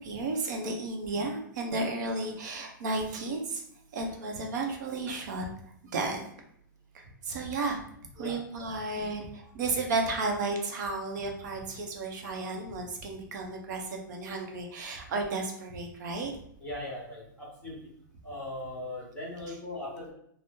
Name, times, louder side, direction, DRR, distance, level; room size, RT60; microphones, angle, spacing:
voice 1, 0.0-3.6 3.9-5.5 5.8-6.3 6.9-7.8 8.2-16.3 19.5-19.6, right 3 dB, 60° right, 2 dB, 0.7 m, -33 dB
voice 2, 16.6-17.7 18.2-20.1, left 1 dB, 10° left, -9 dB, 1.1 m, -39 dB
2.7 x 2.0 x 3.5 m, 0.68 s
hypercardioid pair, 155°, 11 cm